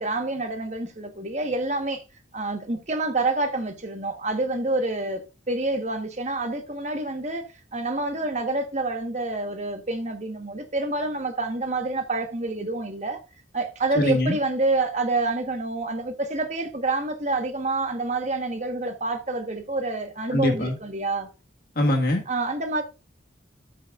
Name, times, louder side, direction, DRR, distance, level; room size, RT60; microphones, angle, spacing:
voice 1, 0.0-2.0 2.3-5.2 5.5-7.4 7.7-13.2 13.5-21.3 22.3-22.8, right 2 dB, 35° right, 1.3 m, -27 dB
voice 2, 13.9-14.4 20.3-20.8 21.7-22.2, left 1 dB, 50° left, 1.7 m, -22 dB
13.5 x 6.5 x 2.5 m
head